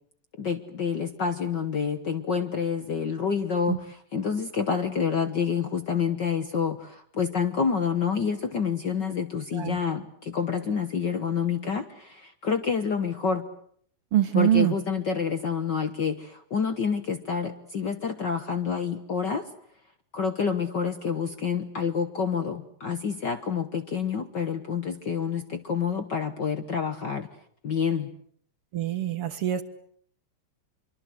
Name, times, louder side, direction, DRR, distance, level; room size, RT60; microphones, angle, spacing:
voice 1, 0.4-13.5 14.3-19.5 20.1-27.3 27.6-28.1, left 6 dB, 50° left, 9 dB, 1.4 m, -28 dB
voice 2, 14.1-14.8 28.7-29.6, right 12 dB, 55° right, 10 dB, 2.0 m, -24 dB
25.5 x 24.5 x 8.0 m, 0.63 s
omnidirectional pair, 3.4 m